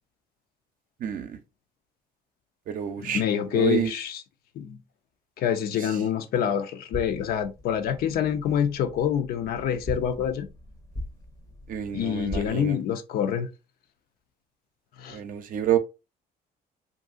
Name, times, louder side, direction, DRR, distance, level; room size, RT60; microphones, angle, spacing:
voice 1, 1.0-1.4 2.7-3.2 3.5-3.9 5.8-5.9 11.7-12.8 15.1-15.8, right 10 dB, 55° right, 0.6 m, -28 dB
voice 2, 3.0-4.2 4.6-4.8 5.4-10.5 11.9-13.5 15.0-15.2, left 9 dB, 65° left, 0.5 m, -26 dB
sound 1, 6.9-12.5, equal, 20° left, 0.6 m, -40 dB
2.7 x 2.6 x 2.5 m
cardioid pair, 110°, 17 cm